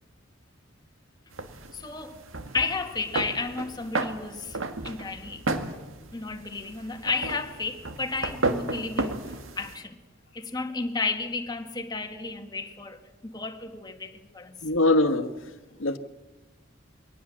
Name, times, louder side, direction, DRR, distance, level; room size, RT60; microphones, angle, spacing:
sound 1, 1.3-9.8, right 2 dB, 90° right, 1.9 m, -33 dB
voice 1, 1.7-2.2 2.5-5.5 6.1-10.0 10.4-14.6, left 3 dB, 20° left, 1.7 m, -33 dB
voice 2, 14.6-15.5 15.8-16.0, left 2 dB, 85° left, 1.4 m, -23 dB
23.0 x 18.5 x 7.4 m
head